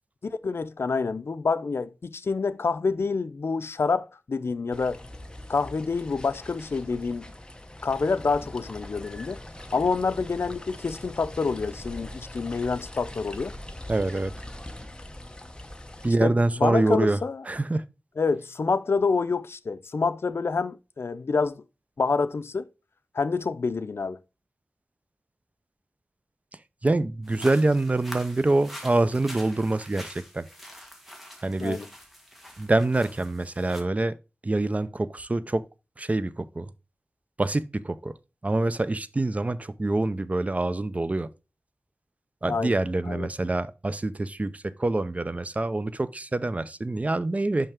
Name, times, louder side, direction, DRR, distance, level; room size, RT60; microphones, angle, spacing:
voice 1, 0.2-5.0 5.5-7.3 7.8-9.4 9.7-13.5 16.0-17.4 18.2-21.6 22.0-22.7 23.1-24.2 31.6-31.9 42.5-42.8 43.0-43.3, left 4 dB, 70° left, 0.5 m, -27 dB
sound 1, 4.7-16.1, left 1 dB, 20° left, 0.9 m, -42 dB
voice 2, 13.9-14.3 16.0-17.2 17.5-17.8 26.8-30.5 31.4-31.8 32.6-34.1 34.4-35.6 36.0-36.7 37.4-38.1 38.4-41.3 42.4-47.7, right 2 dB, 35° right, 0.5 m, -25 dB
sound 2, 27.2-33.8, equal, 5° right, 1.8 m, -45 dB
5.8 x 5.5 x 3.5 m
wide cardioid pair, 75°, 4 cm